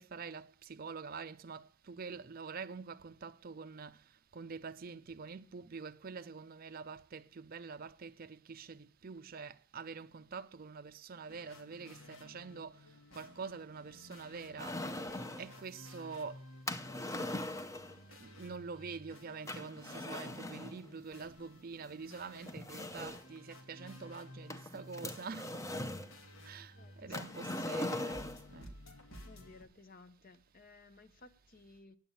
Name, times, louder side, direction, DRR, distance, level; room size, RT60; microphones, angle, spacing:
voice 1, 0.0-4.0 4.3-12.9 13.1-14.8 15.4-16.4 18.1-25.5 26.4-28.7, right 5 dB, 45° right, 0.5 m, -46 dB
sound 1, 11.3-29.6, left 1 dB, 80° left, 2.1 m, -55 dB
sound 2, 14.6-15.5 16.7-18.0 19.5-20.8 21.8-21.9 22.5-23.4 24.5-26.1 27.1-28.5, left 1 dB, 15° left, 0.7 m, -40 dB
voice 2, 26.7-27.9 29.2-32.0, left 3 dB, 45° left, 0.8 m, -58 dB
9.2 x 8.7 x 8.6 m
head